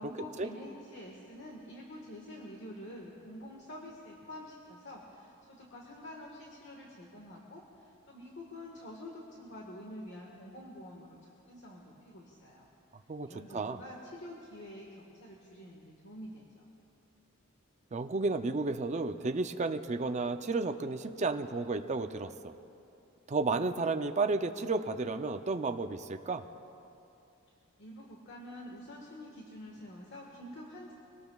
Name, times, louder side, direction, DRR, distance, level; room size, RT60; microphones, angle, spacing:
voice 1, 0.0-12.6 13.3-16.6 27.8-30.9, left 1 dB, 55° left, -1 dB, 1.5 m, -47 dB
voice 2, 13.1-13.8 17.9-22.5 23.3-26.4, right 3 dB, 35° right, 7 dB, 0.5 m, -32 dB
24.5 x 19.0 x 2.4 m, 2.7 s
head